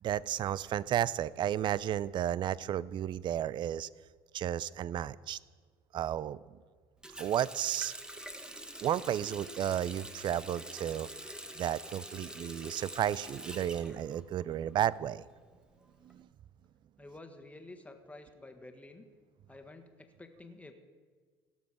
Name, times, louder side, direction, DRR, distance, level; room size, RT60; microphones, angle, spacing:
voice 1, 0.0-3.9 4.3-5.4 5.9-6.4 7.2-7.9 8.8-11.3 11.6-15.2 16.0-16.3, right 11 dB, 40° right, 20 dB, 0.4 m, -33 dB
Water tap faucet, 7.0-14.8 15.1-16.1, right 1 dB, 5° right, 1.2 m, -46 dB
voice 2, 17.0-19.0 19.5-20.7, left 2 dB, 10° left, 6 dB, 1.5 m, -50 dB
17.5 x 7.2 x 4.8 m, 1.5 s
hypercardioid pair, 70°, 12 cm